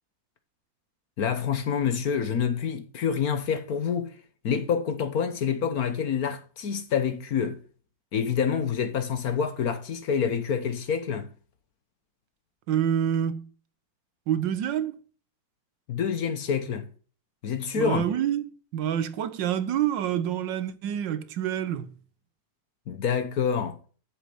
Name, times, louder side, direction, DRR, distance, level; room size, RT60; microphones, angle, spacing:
voice 1, 1.2-4.1 4.4-7.6 8.1-11.3 15.9-16.9 17.4-18.1 22.9-23.8, left 7 dB, 55° left, 1.4 m, -27 dB
voice 2, 12.7-13.4 14.3-15.0 17.7-21.9, right 10 dB, 75° right, 1.5 m, -27 dB
8.0 x 6.7 x 7.9 m
omnidirectional pair, 2.0 m